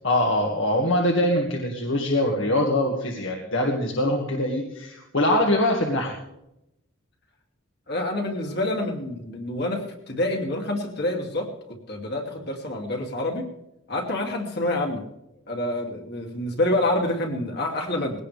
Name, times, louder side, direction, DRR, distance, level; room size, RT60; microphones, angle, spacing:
voice 1, 0.0-6.1, left 1 dB, 70° left, 0 dB, 2.0 m, -23 dB
voice 2, 7.9-11.6 11.9-13.5 13.9-15.1 15.5-18.2, left 1 dB, 55° left, 2 dB, 2.6 m, -27 dB
20.5 x 17.5 x 3.4 m, 0.88 s
head